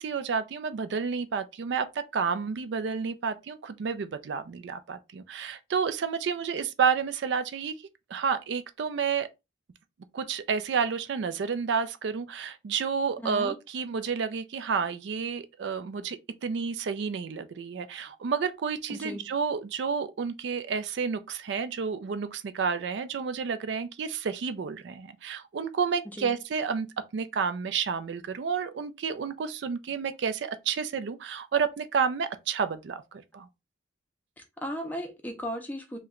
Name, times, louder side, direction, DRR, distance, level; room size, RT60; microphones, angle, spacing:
voice 1, 0.0-7.8 8.1-9.3 10.1-33.5, right 6 dB, 65° right, 0.4 m, -30 dB
voice 2, 13.2-13.6 18.9-19.3 26.1-26.4 34.4-36.0, equal, 10° left, 0.5 m, -36 dB
2.9 x 2.2 x 3.5 m
head